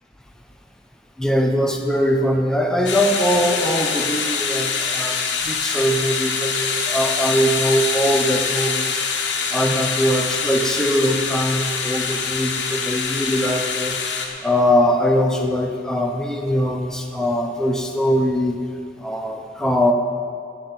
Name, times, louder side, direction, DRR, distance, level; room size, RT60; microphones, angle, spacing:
voice 1, 1.2-9.0 9.5-14.0 14.4-18.6 19.0-19.9, equal, 5° left, 1 dB, 0.9 m, -21 dB
sound 1, 2.9-14.3, left 5 dB, 75° left, 1.5 m, -24 dB
13.0 x 8.8 x 6.1 m, 2.5 s
head